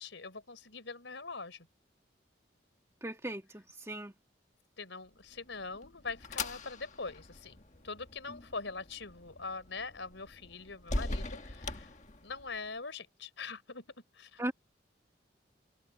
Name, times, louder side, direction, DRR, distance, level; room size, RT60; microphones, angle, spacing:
voice 1, 0.0-1.7 4.8-7.6 7.8-11.9 12.2-13.8 14.1-14.4, left 4 dB, 85° left, 4.0 m, -43 dB
voice 2, 3.0-4.1 14.4-14.5, right 1 dB, 15° right, 1.9 m, -38 dB
sound 1, 5.3-12.7, left 2 dB, 40° left, 1.6 m, -42 dB
head